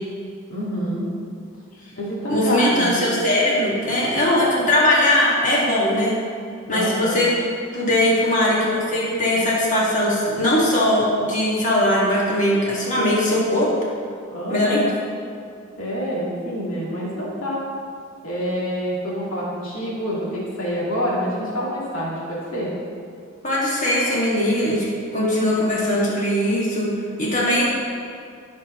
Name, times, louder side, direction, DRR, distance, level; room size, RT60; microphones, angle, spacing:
voice 1, 0.5-1.1 2.0-3.0 6.7-7.2 14.3-14.9 15.8-17.6 18.2-22.7, equal, 75° left, -6 dB, 2.3 m, -27 dB
voice 2, 2.3-6.2 6.7-7.3 7.7-13.7 14.5-14.9 23.4-24.9 25.1-26.9 27.2-27.6, left 1 dB, 35° left, -6 dB, 2.2 m, -20 dB
16.5 x 6.9 x 3.2 m, 2.3 s
head